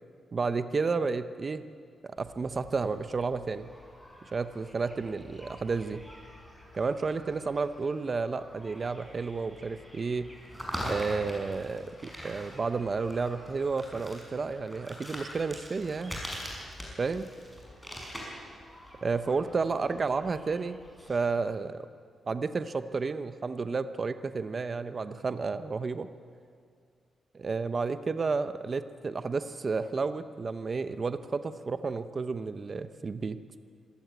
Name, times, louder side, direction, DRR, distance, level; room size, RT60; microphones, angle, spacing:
voice 1, 0.3-1.6 2.0-3.7 4.3-6.0 6.7-10.3 10.9-16.2 17.0-17.3 19.0-20.8 21.1-21.9 22.3-26.1 27.3-33.4, right 4 dB, 35° right, 11 dB, 0.8 m, -31 dB
sound 1, 2.2-21.2, equal, 5° left, 5.7 m, -44 dB
25.5 x 16.0 x 9.3 m, 2.2 s
wide cardioid pair, 140°, 0 cm